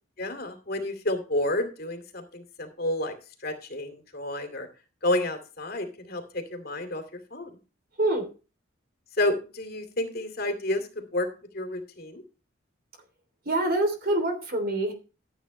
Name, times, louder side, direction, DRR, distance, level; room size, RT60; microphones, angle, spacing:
voice 1, 0.2-3.1 3.4-4.7 5.0-7.6 9.1-12.2, left 1 dB, 50° left, 6 dB, 2.5 m, -30 dB
voice 2, 13.4-14.9, right 1 dB, 50° right, 6 dB, 3.2 m, -25 dB
13.5 x 9.0 x 3.2 m, 0.33 s
head